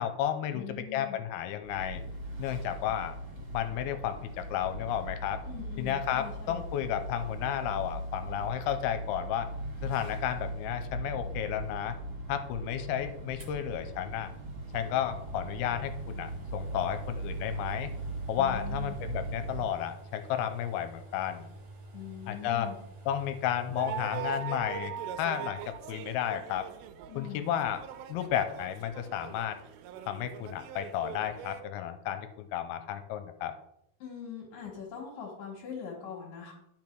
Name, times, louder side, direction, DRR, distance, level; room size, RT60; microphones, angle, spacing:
voice 1, 0.0-0.7 0.9-2.0 2.4-3.1 3.5-5.4 5.8-9.5 9.8-12.0 12.3-14.3 14.7-17.9 18.3-21.5 22.3-22.7 23.1-26.7 27.2-27.8 28.1-29.6 30.1-33.5, left 10 dB, 85° left, 9 dB, 2.6 m, -32 dB
voice 2, 0.5-1.2 5.5-6.6 18.4-19.0 21.9-22.8 27.1-27.5 34.0-36.5, left 8 dB, 60° left, -3 dB, 3.0 m, -42 dB
sound 1, 1.6-19.7, right 1 dB, 30° right, 2.9 m, -39 dB
sound 2, 13.4-24.3, right 2 dB, 50° right, 2.3 m, -49 dB
sound 3, 23.8-31.6, right 10 dB, 85° right, 2.6 m, -41 dB
10.5 x 5.7 x 4.6 m, 0.80 s
omnidirectional pair, 4.6 m